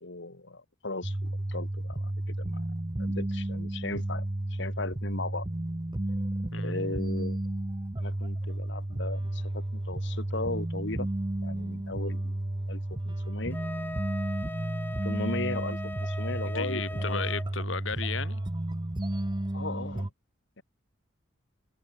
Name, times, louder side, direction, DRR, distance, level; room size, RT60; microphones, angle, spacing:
voice 1, 0.0-1.2 1.5-2.6 3.0-4.3 4.5-5.5 6.6-7.4 8.0-11.1 11.4-12.4 12.7-12.8 13.1-13.6 15.0-17.3 19.5-20.1 20.6-20.7, left 2 dB, 70° left, 2.3 m, -37 dB
sound 1, 1.0-20.1, right 1 dB, 25° right, 0.8 m, -32 dB
Wind instrument woodwind instrument, 13.5-17.5, left 1 dB, 10° left, 1.4 m, -40 dB
voice 2, 16.5-18.4, left 5 dB, 85° left, 2.1 m, -34 dB
head